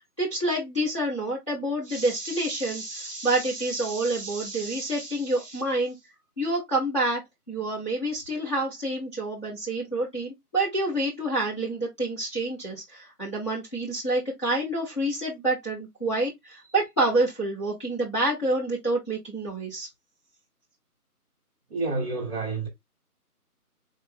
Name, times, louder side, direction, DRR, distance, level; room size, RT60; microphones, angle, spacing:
voice 1, 0.2-5.9 6.4-7.2 7.5-19.9, right 2 dB, 20° left, 1.0 m, -28 dB
voice 2, 21.7-22.7, right 3 dB, 40° right, 1.3 m, -29 dB
4.0 x 2.5 x 3.4 m
figure-of-eight pair, 165°, 46 cm